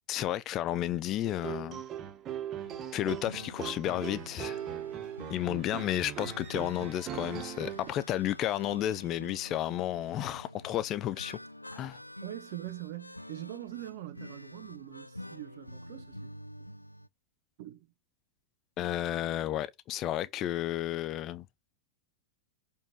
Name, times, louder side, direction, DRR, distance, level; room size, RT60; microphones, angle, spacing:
voice 1, 0.1-1.8 2.9-4.6 5.3-11.4 11.7-12.0 18.8-21.5, left 12 dB, 35° left, 0.6 m, -32 dB
sound 1, 1.2-7.9, right 9 dB, 30° right, 1.5 m, -40 dB
sound 2, 2.6-17.1, left 1 dB, 85° left, 0.4 m, -48 dB
voice 2, 12.2-16.3 17.6-17.9, right 15 dB, 50° right, 1.6 m, -43 dB
6.7 x 5.6 x 6.2 m
figure-of-eight pair, 90°, 0 cm